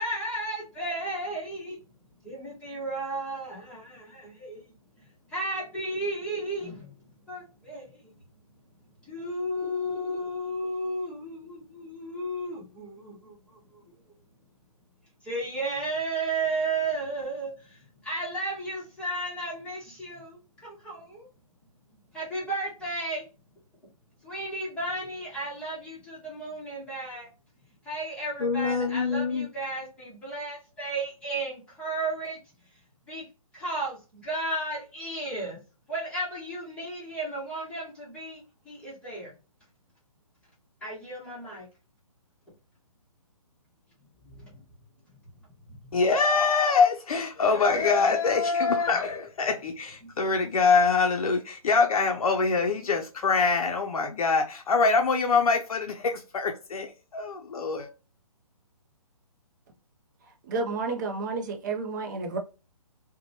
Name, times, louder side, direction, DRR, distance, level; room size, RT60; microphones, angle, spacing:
voice 1, 0.0-1.8 2.2-4.6 5.3-6.9 7.3-8.0 9.0-13.8 15.2-21.3 22.1-23.2 24.2-27.3 27.8-32.4 33.1-33.2 33.5-35.6 35.9-39.3 40.8-41.7 44.2-44.6 50.0-50.1, right 2 dB, 5° left, 1.0 m, -34 dB
voice 2, 28.4-29.5 45.9-57.9, left 4 dB, 70° left, 0.5 m, -24 dB
voice 3, 60.5-62.4, right 3 dB, 30° right, 0.5 m, -31 dB
2.9 x 2.2 x 2.7 m
hypercardioid pair, 150°, 19 cm